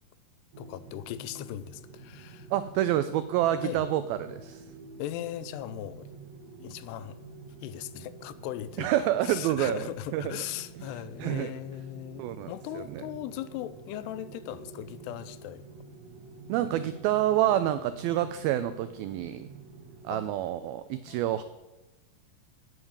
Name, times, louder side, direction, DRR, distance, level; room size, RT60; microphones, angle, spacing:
sound 1, 0.5-20.3, right 3 dB, 65° right, 1.7 m, -48 dB
voice 1, 0.6-2.5 3.6-3.8 5.0-6.1 6.6-7.2 7.6-15.6 20.1-20.3 21.1-21.2, left 13 dB, 80° left, 2.6 m, -38 dB
voice 2, 2.5-4.7 8.8-10.3 11.2-11.5 12.2-13.0 16.5-19.5 20.0-21.4, right 12 dB, 90° right, 2.1 m, -28 dB
9.8 x 9.0 x 8.7 m
omnidirectional pair, 4.9 m